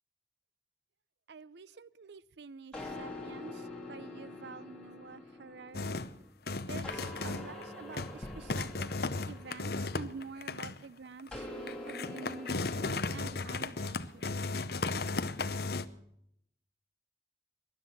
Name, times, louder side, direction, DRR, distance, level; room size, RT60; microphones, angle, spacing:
voice 1, 1.3-6.0 6.7-8.9 9.3-14.3, right 4 dB, 70° right, 0.6 m, -48 dB
Piano Keys Smashed Down, 2.7-6.3 6.8-10.6 11.3-14.0, left 1 dB, 5° left, 2.8 m, -46 dB
sound 1, 5.7-6.2 6.5-7.6 7.9-8.2 8.5-10.8 11.2-11.3 11.7-15.9, left 3 dB, 60° left, 0.8 m, -35 dB
sound 2, 8.2-11.2, equal, 30° left, 1.6 m, -52 dB
19.0 x 12.0 x 6.0 m
head